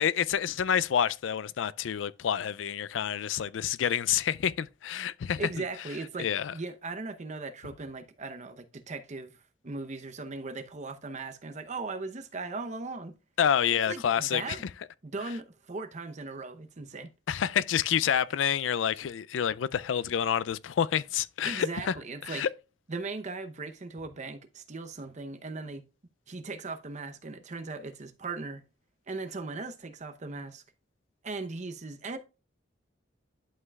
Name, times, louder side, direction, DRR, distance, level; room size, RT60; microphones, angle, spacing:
voice 1, 0.0-5.4 6.2-6.5 13.4-14.6 17.3-21.9 22.2-22.5, left 8 dB, 85° left, 0.4 m, -28 dB
voice 2, 5.4-9.4 9.6-13.1 13.9-14.6 15.0-17.1 21.4-22.5 22.9-25.8 26.3-28.6 29.1-30.6 31.2-32.2, right 3 dB, 40° right, 0.8 m, -38 dB
11.0 x 5.5 x 2.3 m
head